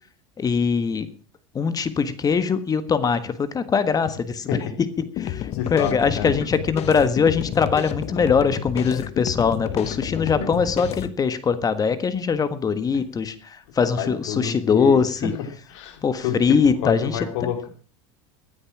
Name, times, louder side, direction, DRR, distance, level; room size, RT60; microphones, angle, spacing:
voice 1, 0.4-1.1 1.5-4.9 5.2-15.3 16.0-17.5, left 6 dB, 25° left, 12 dB, 1.5 m, -22 dB
sound 1, 5.2-11.1, left 12 dB, 45° left, 1.0 m, -30 dB
voice 2, 5.5-6.3 10.3-10.6 14.0-15.3 15.7-17.7, left 7 dB, 70° left, 6 dB, 3.8 m, -29 dB
16.0 x 9.7 x 6.1 m, 0.40 s
supercardioid pair, 115°, 15 cm